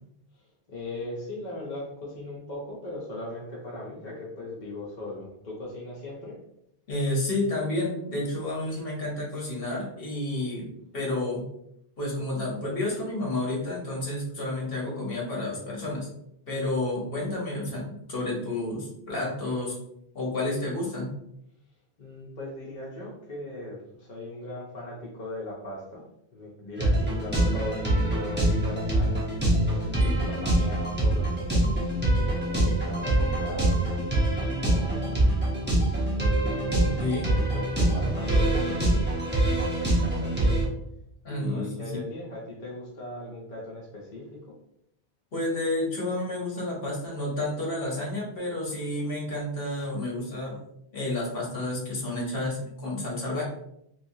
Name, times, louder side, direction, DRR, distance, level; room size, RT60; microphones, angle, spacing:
voice 1, 0.3-6.4 22.0-26.0 26.3-31.6 32.3-35.3 36.1-36.9 37.3-40.6 41.3-44.2, left 1 dB, 50° left, -5 dB, 0.9 m, -39 dB
voice 2, 6.9-10.7 10.9-11.4 12.0-16.1 16.5-19.7 20.1-21.1 29.9-30.2 37.0-37.3 41.2-42.0 45.3-50.6 50.9-53.4, left 2 dB, 65° left, -3 dB, 1.3 m, -30 dB
Tecno pop base and guitar, 26.8-40.6, right 1 dB, 10° right, 0.8 m, -24 dB
3.1 x 2.9 x 2.7 m, 0.77 s
omnidirectional pair, 1.0 m